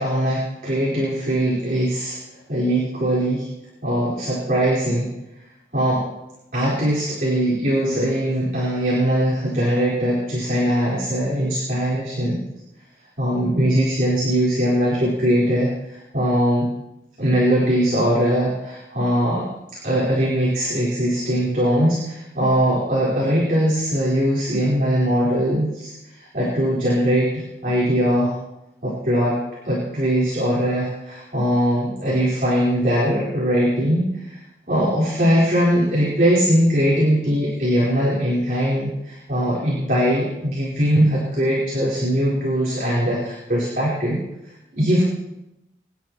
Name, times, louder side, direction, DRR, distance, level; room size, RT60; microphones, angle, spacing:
voice 1, 0.0-2.2 2.5-3.5 3.8-5.1 5.7-6.0 6.5-12.4 13.2-16.7 17.2-28.3 28.8-29.4 29.6-34.4 34.7-44.2 44.7-45.0, equal, 50° right, -7 dB, 4.3 m, -21 dB
24.5 x 11.0 x 3.1 m, 0.90 s
head